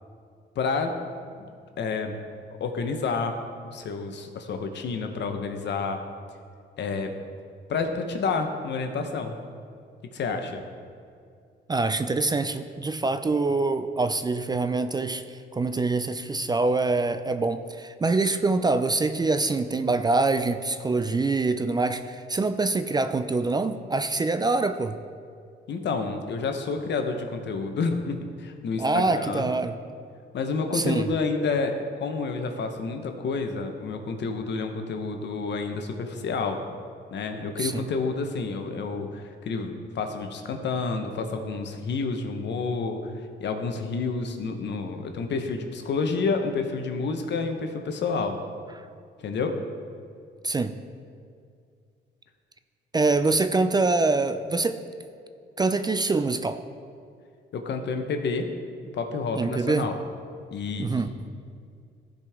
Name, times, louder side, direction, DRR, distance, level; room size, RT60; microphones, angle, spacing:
voice 1, 0.5-1.0 1.4-2.2 2.6-3.4 3.7-6.0 6.8-7.2 7.7-9.4 10.0-10.6 25.7-29.5 30.3-36.6 37.1-48.4 49.2-49.6 57.5-58.5 58.9-60.0 60.5-61.0, left 4 dB, 60° left, 5 dB, 1.0 m, -29 dB
voice 2, 11.7-25.0 28.8-29.7 30.7-31.1 37.6-37.8 50.4-50.7 52.9-54.8 55.6-56.6 59.3-59.9 60.8-61.1, right 3 dB, 20° right, 10 dB, 0.4 m, -25 dB
14.5 x 5.1 x 3.6 m, 2.3 s
cardioid pair, 90°, 20 cm